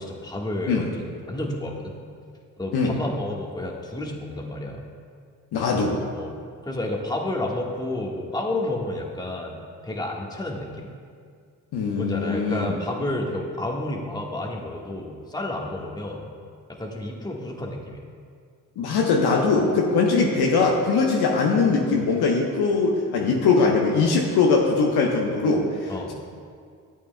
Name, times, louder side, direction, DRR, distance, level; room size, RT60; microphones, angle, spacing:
voice 1, 0.0-2.0 2.6-4.8 6.1-10.9 12.0-16.2 16.7-18.0 25.9-26.1, left 1 dB, 10° left, -1 dB, 1.4 m, -31 dB
voice 2, 5.5-6.0 11.7-12.8 18.8-26.1, left 4 dB, 60° left, 0 dB, 1.1 m, -21 dB
13.0 x 8.4 x 2.2 m, 2.2 s
hypercardioid pair, 45°, 44 cm